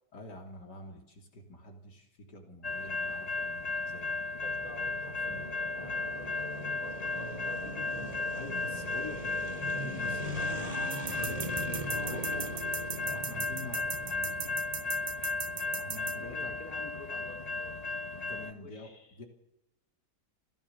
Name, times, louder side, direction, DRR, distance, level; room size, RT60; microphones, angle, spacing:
voice 1, 0.1-4.3 5.0-5.6 7.9-12.5 13.0-14.6 15.8-16.6 18.3-18.9 19.2-19.3, left 2 dB, 80° left, 3 dB, 3.7 m, -47 dB
sound 1, 2.6-18.5, left 3 dB, 25° left, 1.2 m, -35 dB
sound 2, 4.4-15.8, right 1 dB, 20° right, 2.6 m, -41 dB
voice 2, 5.7-8.1 11.8-13.3 15.6-15.9 16.1-17.8 18.6-19.2, left 3 dB, 65° left, 5 dB, 3.7 m, -51 dB
sound 3, 10.9-16.2, right 7 dB, 40° right, 0.8 m, -38 dB
29.5 x 14.5 x 7.0 m, 0.87 s
omnidirectional pair, 1.8 m